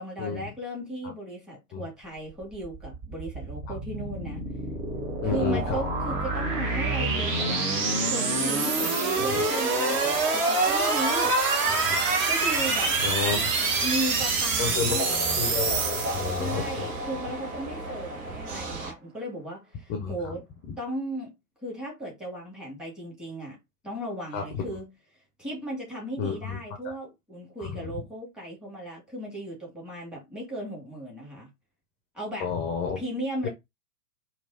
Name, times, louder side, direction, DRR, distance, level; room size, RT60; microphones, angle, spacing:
voice 1, 0.0-4.4 5.2-11.4 12.3-12.9 13.2-15.1 16.4-20.4 20.8-21.3 21.6-23.6 23.8-24.9 25.4-31.5 32.1-32.5 33.0-33.5, right 1 dB, ahead, 2.1 m, -36 dB
sound 1, 2.3-16.8, right 3 dB, 25° right, 1.2 m, -26 dB
voice 2, 5.2-5.8 9.2-9.5 11.2-11.3 11.7-12.0 13.0-13.4 13.8-13.9 14.6-16.9 19.9-20.1 24.3-24.4 26.2-26.6 26.8-26.9 27.6-27.9 32.4-33.0, left 6 dB, 20° left, 0.7 m, -31 dB
sound 2, 11.6-18.9, right 1 dB, 60° right, 1.6 m, -35 dB
4.6 x 2.9 x 2.7 m
figure-of-eight pair, 110°, 46 cm